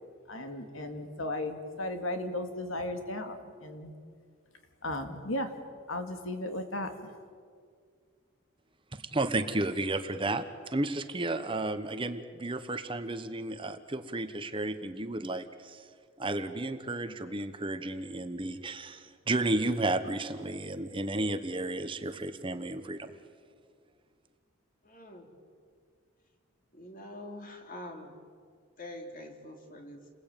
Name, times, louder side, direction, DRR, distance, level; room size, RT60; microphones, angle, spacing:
voice 1, 0.3-3.9 4.8-5.5 5.9-6.9, left 1 dB, 75° left, 6 dB, 2.6 m, -35 dB
voice 2, 8.9-15.9 16.2-23.2, right 2 dB, 25° right, 9 dB, 1.1 m, -33 dB
voice 3, 24.8-25.3 26.7-28.1 28.8-30.1, left 1 dB, 40° left, 3 dB, 3.5 m, -45 dB
29.5 x 21.5 x 9.1 m, 2.1 s
head